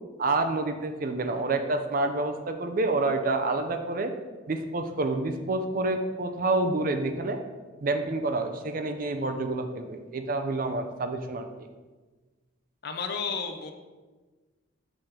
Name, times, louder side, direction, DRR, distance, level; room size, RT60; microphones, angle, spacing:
voice 1, 0.2-4.1 4.5-7.4 7.8-11.5, right 2 dB, 45° right, 7 dB, 0.5 m, -28 dB
voice 2, 12.8-13.7, left 5 dB, 50° left, 6 dB, 0.6 m, -32 dB
6.2 x 4.4 x 4.9 m, 1.3 s
head